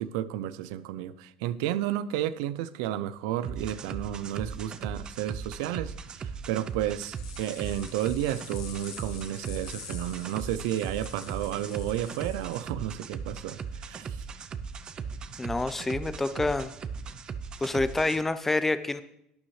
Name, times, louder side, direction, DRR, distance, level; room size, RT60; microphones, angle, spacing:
voice 1, 0.0-14.2, right 12 dB, 80° right, 15 dB, 0.5 m, -32 dB
sound 1, 3.4-18.2, right 5 dB, 35° right, 0.6 m, -38 dB
sound 2, 7.1-12.6, left 8 dB, 90° left, 2.1 m, -47 dB
voice 2, 15.4-16.7 17.6-19.0, left 2 dB, 10° left, 12 dB, 0.7 m, -27 dB
12.0 x 9.5 x 3.2 m, 0.74 s
supercardioid pair, 115°, 3 cm